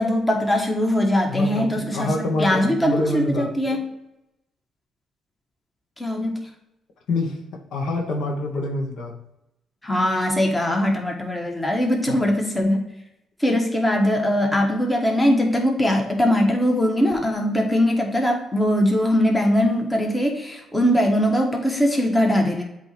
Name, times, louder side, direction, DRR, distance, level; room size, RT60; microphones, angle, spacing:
voice 1, 0.0-3.8 6.0-6.5 9.8-12.9 13.4-22.6, equal, 15° left, 2 dB, 1.2 m, -21 dB
voice 2, 1.3-3.5 7.1-9.2 12.1-12.3, left 2 dB, 70° left, 2 dB, 1.2 m, -26 dB
7.9 x 2.9 x 4.4 m, 0.89 s
cardioid pair, 90°, 0 cm